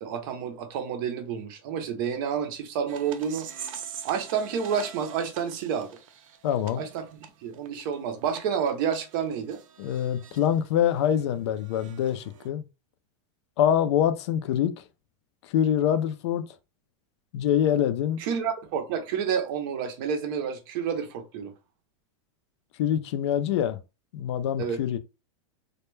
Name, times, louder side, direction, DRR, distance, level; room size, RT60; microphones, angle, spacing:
voice 1, 0.0-3.5 4.0-5.9 6.8-9.6 18.2-21.5 23.5-23.6 24.6-24.8, right 7 dB, 45° right, 0.5 m, -29 dB
sound 1, 2.9-10.5 10.9-12.5, right 8 dB, 85° right, 0.5 m, -44 dB
voice 2, 6.4-6.8 9.8-12.6 13.6-14.7 15.5-16.4 17.3-18.2 22.8-23.8 24.1-25.0, left 10 dB, 60° left, 0.4 m, -25 dB
2.1 x 2.1 x 3.1 m
supercardioid pair, 165°, 17 cm